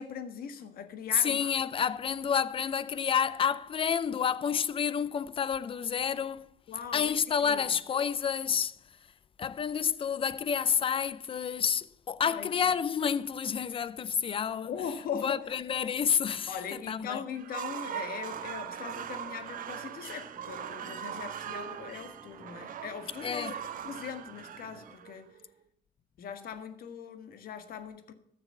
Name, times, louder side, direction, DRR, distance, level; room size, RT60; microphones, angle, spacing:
voice 1, 0.0-1.5 6.7-7.7 12.2-12.7 14.6-15.4 16.5-25.3 26.2-28.1, left 7 dB, 60° left, 1.5 m, -40 dB
voice 2, 1.1-6.5 6.9-8.8 9.4-14.7 15.2-17.2 21.1-21.2 23.2-23.5, left 7 dB, 30° left, 0.6 m, -29 dB
sound 1, 17.3-25.5, right 10 dB, 55° right, 0.9 m, -40 dB
sound 2, 18.3-24.9, right 3 dB, 15° right, 0.7 m, -55 dB
13.5 x 7.0 x 5.5 m
cardioid pair, 110°, 17 cm